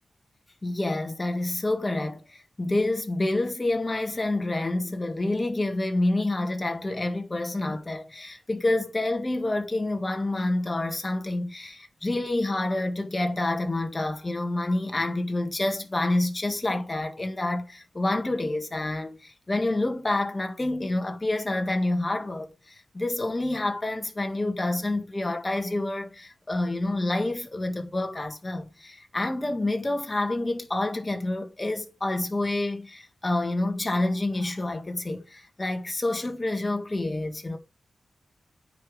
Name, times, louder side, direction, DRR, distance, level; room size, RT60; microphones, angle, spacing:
voice 1, 0.6-37.6, left 2 dB, 25° left, 1.8 m, -28 dB
9.1 x 5.2 x 5.0 m
wide cardioid pair, 85°, 0 cm